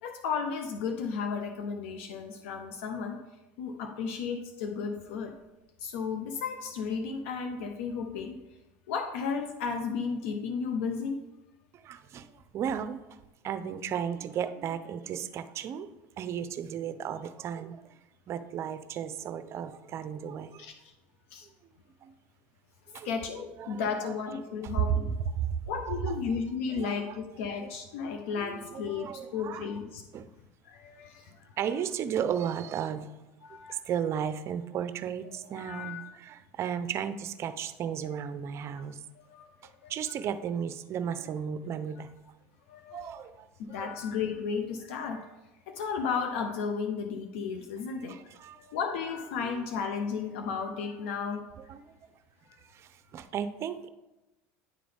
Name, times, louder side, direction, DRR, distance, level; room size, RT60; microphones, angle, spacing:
voice 1, 0.0-3.2 3.6-5.3 5.8-8.4 8.9-11.2 20.6-20.9 21.3-21.5 23.0-25.1 25.7-30.0 30.6-31.5 33.4-33.8 35.2-36.0 39.2-39.5 39.8-39.9 42.7-43.1 43.7-45.3 45.7-48.2 48.5-51.4, left 5 dB, 80° left, 5 dB, 0.6 m, -34 dB
voice 2, 11.7-13.0 13.4-15.9 16.2-17.8 18.3-20.7 22.0-22.1 22.9-23.1 23.6-24.1 25.3-25.6 25.9-26.2 26.7-27.2 27.6-27.7 28.4-29.7 30.1-30.3 31.6-33.1 33.7-39.0 39.9-42.1 42.9-43.9 48.1-48.6 49.4-49.6 51.7-51.9 52.7-53.9, right 8 dB, 45° right, 11 dB, 0.5 m, -35 dB
9.8 x 3.9 x 3.4 m, 1.0 s
supercardioid pair, 105°, 7 cm